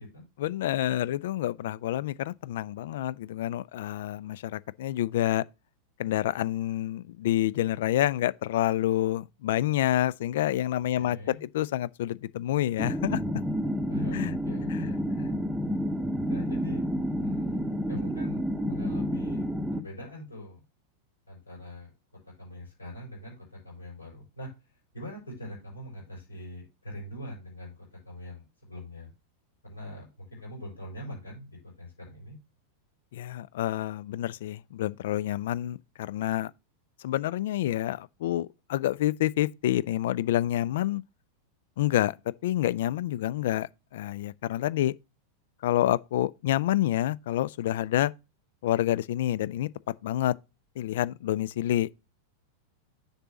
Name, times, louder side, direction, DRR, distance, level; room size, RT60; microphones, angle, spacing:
voice 1, 0.4-5.4 6.0-13.2 14.1-14.3 14.7-14.9 15.2-15.3 33.1-36.5 37.0-41.0 41.8-42.1 42.4-44.9 45.6-48.1 48.6-49.7 50.0-50.3 50.8-51.9, left 13 dB, 55° left, 0.3 m, -28 dB
voice 2, 10.9-11.4 13.9-15.1 16.3-16.8 17.2-19.5 19.8-20.6 21.3-21.9 22.4-24.5 24.9-29.1 29.6-32.4, equal, 75° left, 4.1 m, -43 dB
sound 1, 12.8-19.8, equal, 5° right, 0.8 m, -30 dB
6.7 x 4.1 x 5.9 m
figure-of-eight pair, 90°, 0 cm